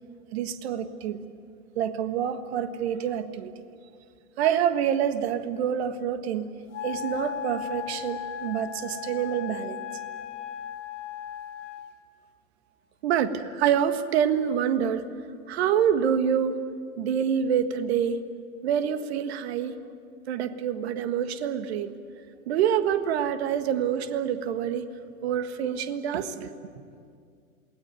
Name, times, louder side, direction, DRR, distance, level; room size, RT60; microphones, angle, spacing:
voice 1, 0.3-1.2 1.7-3.5 4.4-6.5 6.8-9.8 13.0-15.0 15.5-16.6 17.0-18.2 18.6-19.8 20.3-22.0 22.5-24.9 25.2-26.5, right 8 dB, 50° right, 11 dB, 1.6 m, -26 dB
Wind instrument woodwind instrument, 6.7-11.9, left 10 dB, 60° left, 1.6 m, -36 dB
28.0 x 20.0 x 9.2 m, 2.3 s
figure-of-eight pair, 110°, 42 cm